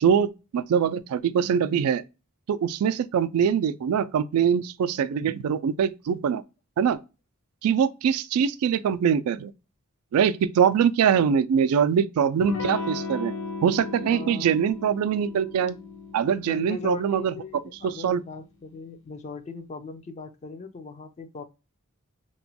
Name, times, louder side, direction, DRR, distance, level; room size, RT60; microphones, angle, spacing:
voice 1, 0.0-2.0 2.5-6.4 6.8-7.0 7.6-9.5 10.1-13.3 13.6-15.8 16.1-17.3 17.8-18.2, right 7 dB, 85° right, 0.3 m, -23 dB
Electric guitar / Strum, 12.4-17.8, left 4 dB, 60° left, 0.7 m, -36 dB
voice 2, 14.1-14.5 16.4-21.4, left 3 dB, 30° left, 0.3 m, -38 dB
2.9 x 2.2 x 2.7 m
head